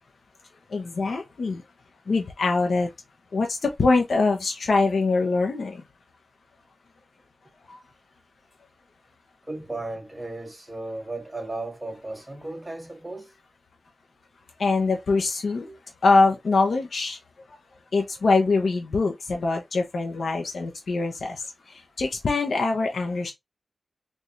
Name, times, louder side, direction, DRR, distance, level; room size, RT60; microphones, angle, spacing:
voice 1, 0.7-1.6 2.1-2.9 3.3-3.5 3.8-5.7 14.6-15.6 16.0-17.2 17.9-21.4 22.0-23.3, left 3 dB, 75° left, 0.8 m, -23 dB
voice 2, 9.5-13.3 15.7-15.8, right 2 dB, 20° right, 1.2 m, -35 dB
3.5 x 3.2 x 2.6 m
wide cardioid pair, 80°, 0 cm